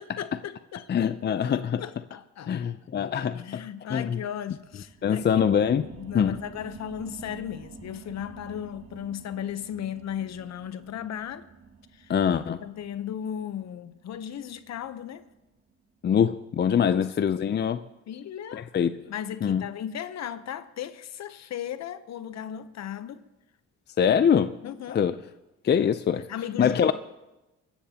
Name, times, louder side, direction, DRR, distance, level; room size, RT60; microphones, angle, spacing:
voice 1, 0.0-3.1 3.3-5.3 5.5-11.5 11.9-12.1 12.6-15.3 16.8-17.0 18.1-18.7 19.1-23.2 24.0-24.1 24.6-25.1 26.3-26.9, left 9 dB, 60° left, 0.9 m, -36 dB
voice 2, 0.9-1.8 2.5-3.6 3.9-4.2 5.0-5.9 6.1-6.4 12.1-12.6 16.0-17.8 18.5-19.0 19.4-19.7 24.0-24.5 24.9-25.2 25.6-26.3 26.6-26.9, left 8 dB, 35° left, 0.5 m, -23 dB
sound 1, 4.6-15.7 16.1-16.2, right 5 dB, 45° right, 2.5 m, -49 dB
23.0 x 14.0 x 2.9 m
cardioid pair, 90°, 30 cm